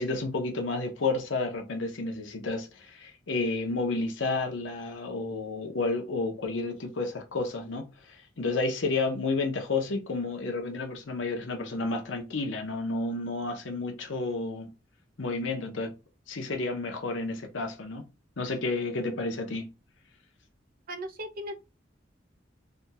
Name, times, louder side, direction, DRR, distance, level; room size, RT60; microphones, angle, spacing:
voice 1, 0.0-7.9 8.4-14.7 15.2-15.9 16.3-18.1 18.4-19.7, left 3 dB, 70° left, 0.8 m, -31 dB
voice 2, 20.9-21.5, equal, 45° right, 0.5 m, -37 dB
3.4 x 2.2 x 2.8 m
head